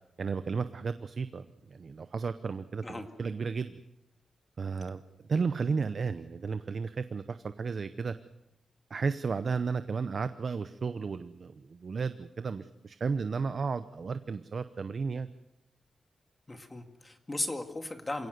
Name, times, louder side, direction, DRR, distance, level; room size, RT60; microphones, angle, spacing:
voice 1, 0.2-3.8 4.6-5.0 5.3-8.1 8.9-15.3, right 5 dB, 45° right, 11 dB, 0.8 m, -33 dB
voice 2, 16.5-18.3, left 2 dB, 20° left, 6 dB, 2.1 m, -36 dB
27.5 x 17.5 x 6.7 m, 0.94 s
wide cardioid pair, 140°, 0 cm